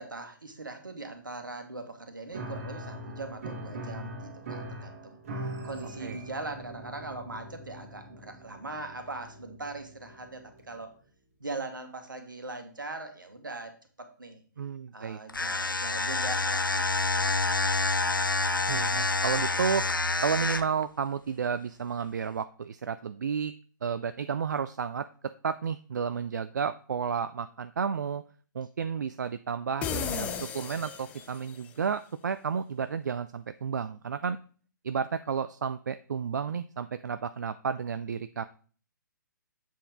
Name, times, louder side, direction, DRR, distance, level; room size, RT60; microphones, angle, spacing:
voice 1, 0.0-5.2 5.6-10.9 11.4-13.7 14.0-14.4 14.9-17.9, right 3 dB, 80° right, 6 dB, 1.5 m, -41 dB
Piano, 2.3-10.8, equal, 45° right, 1.5 m, -42 dB
voice 2, 14.6-15.2 18.7-19.9 20.2-23.5 23.8-25.1 25.4-28.2 28.5-34.4 34.8-38.4, right 6 dB, 60° right, 12 dB, 0.4 m, -32 dB
sound 1, 15.3-20.8, left 3 dB, 90° left, 0.6 m, -27 dB
sound 2, 29.8-31.6, left 8 dB, 15° left, 0.4 m, -35 dB
7.3 x 4.4 x 3.6 m, 0.42 s
figure-of-eight pair, 130°, 11 cm